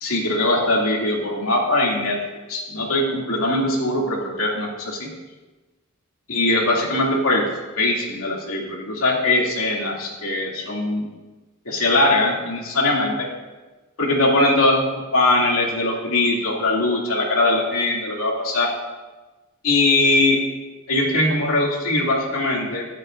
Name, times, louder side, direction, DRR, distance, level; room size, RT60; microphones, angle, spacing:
voice 1, 0.0-2.2 2.5-5.1 6.3-7.4 7.8-11.1 11.7-13.3 14.0-14.8 15.1-18.7 19.6-20.4 20.9-22.9, left 2 dB, 85° left, -2 dB, 2.5 m, -21 dB
24.5 x 8.4 x 2.6 m, 1.2 s
head